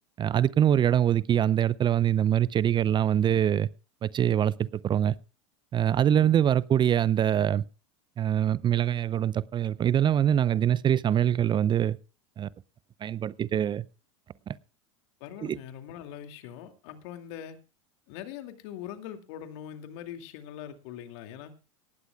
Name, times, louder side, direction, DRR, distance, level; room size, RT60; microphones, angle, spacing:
voice 1, 0.2-3.7 4.0-5.1 5.7-7.6 8.2-12.0 12.4-12.5 13.0-13.9 15.4-15.6, right 10 dB, 30° right, 0.6 m, -24 dB
voice 2, 15.2-17.6 18.1-21.6, left 10 dB, 60° left, 2.4 m, -42 dB
18.5 x 15.0 x 2.3 m
hypercardioid pair, 95°, 17 cm